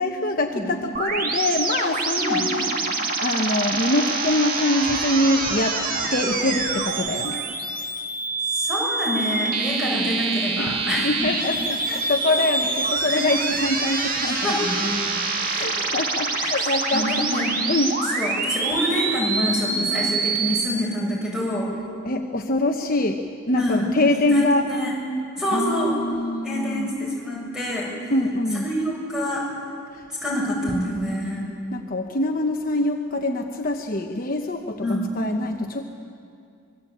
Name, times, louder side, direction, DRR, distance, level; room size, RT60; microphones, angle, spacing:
voice 1, 0.0-5.8 6.1-7.4 10.6-10.7 11.0-14.5 15.4-17.3 17.7-18.0 22.0-23.2 23.5-24.7 25.5-26.9 28.1-28.7 29.9-30.1 31.7-35.8, left 2 dB, 40° left, 3 dB, 1.1 m, -24 dB
sound 1, 0.9-20.7, right 3 dB, 40° right, 2.2 m, -26 dB
voice 2, 8.5-11.3 13.1-13.2 14.4-14.9 15.6-15.8 16.9-17.6 18.1-21.7 23.6-23.9 24.3-24.9 25.4-25.9 26.4-27.9 28.5-29.4 30.2-31.4 34.8-35.1, equal, 5° right, -4 dB, 7.3 m, -26 dB
25.0 x 22.5 x 8.7 m, 2.4 s
head